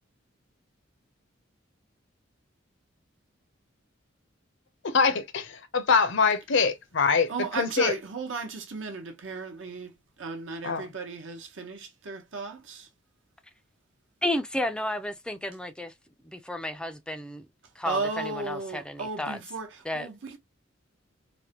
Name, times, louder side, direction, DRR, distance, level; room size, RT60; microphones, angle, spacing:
voice 1, 4.8-7.3 7.6-7.9 10.6-10.8, left 5 dB, 65° left, 0.6 m, -24 dB
voice 2, 7.3-12.9 17.6-20.4, right 4 dB, 70° right, 0.9 m, -35 dB
voice 3, 14.2-15.9 16.2-17.5 17.8-19.4 19.9-20.1, left 1 dB, 5° left, 0.4 m, -32 dB
3.3 x 2.1 x 2.8 m
head